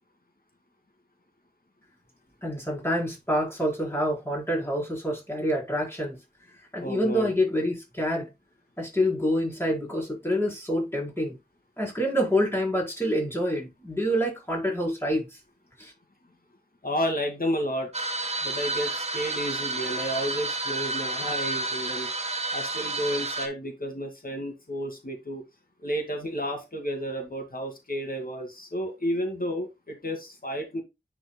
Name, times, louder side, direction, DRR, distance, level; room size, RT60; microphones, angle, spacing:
voice 1, 2.4-6.2 6.7-8.3 8.8-11.3 11.8-15.3 15.8-15.9, equal, 15° left, 4.4 m, -27 dB
voice 2, 6.8-7.3 16.8-18.1 18.4-22.1 22.5-25.4 25.8-30.8, equal, 55° left, 2.3 m, -31 dB
sound 1, 17.9-23.5, right 2 dB, 40° right, 1.1 m, -30 dB
10.0 x 4.7 x 2.2 m
wide cardioid pair, 60°, 18 cm